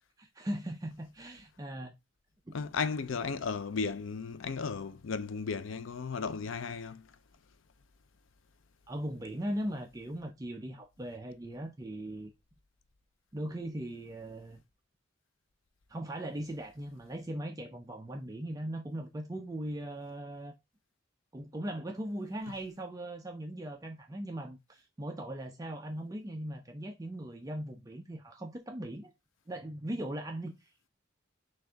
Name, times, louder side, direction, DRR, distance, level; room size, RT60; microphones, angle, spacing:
voice 1, 0.2-1.9 2.5-2.6 8.9-12.3 13.3-14.6 15.9-20.5 21.3-29.1 29.5-30.9, right 1 dB, 15° right, 0.4 m, -39 dB
voice 2, 2.5-7.0, left 5 dB, 75° left, 0.5 m, -35 dB
6.2 x 2.5 x 3.3 m
head